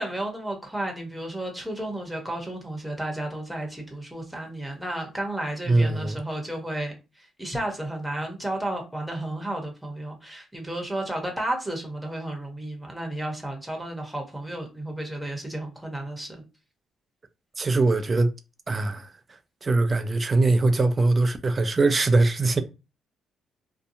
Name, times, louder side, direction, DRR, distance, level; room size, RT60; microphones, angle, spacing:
voice 1, 0.0-6.9 7.4-16.4, right 1 dB, 5° right, 0.9 m, -32 dB
voice 2, 5.7-6.2 17.6-18.3 18.7-19.1 19.6-22.6, right 3 dB, 30° right, 0.4 m, -22 dB
2.7 x 2.2 x 2.6 m
cardioid pair, 90°, 0 cm